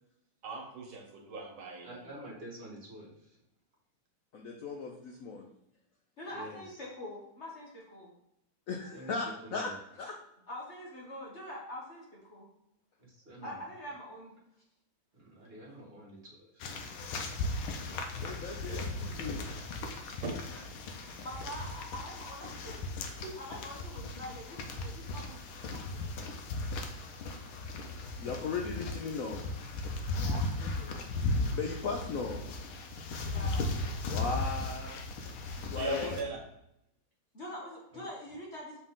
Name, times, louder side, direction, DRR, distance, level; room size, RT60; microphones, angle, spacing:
voice 1, 0.4-2.0 18.7-18.8 20.2-20.3 23.2-23.4 35.8-36.4, right 1 dB, 80° right, 1 dB, 2.1 m, -38 dB
voice 2, 1.8-3.3 6.3-6.8 8.9-9.2 9.4-9.8 13.0-13.6 15.1-16.5 37.9-38.0, right 1 dB, 30° right, -4 dB, 1.9 m, -48 dB
voice 3, 4.3-5.5 8.7-9.7 10.0-10.1 18.2-19.5 28.2-29.5 31.5-32.4 34.1-35.0 35.7-36.2, left 4 dB, 65° left, 1 dB, 0.8 m, -37 dB
voice 4, 6.2-8.1 10.5-12.5 13.4-14.3 21.2-22.7 23.1-25.4 25.6-26.5 30.1-31.3 33.2-33.8 37.3-38.8, left 1 dB, 40° left, -3 dB, 1.4 m, -45 dB
sound 1, 16.6-36.2, left 2 dB, 85° left, 1.6 m, -37 dB
6.8 x 4.3 x 3.7 m, 0.81 s
omnidirectional pair, 2.2 m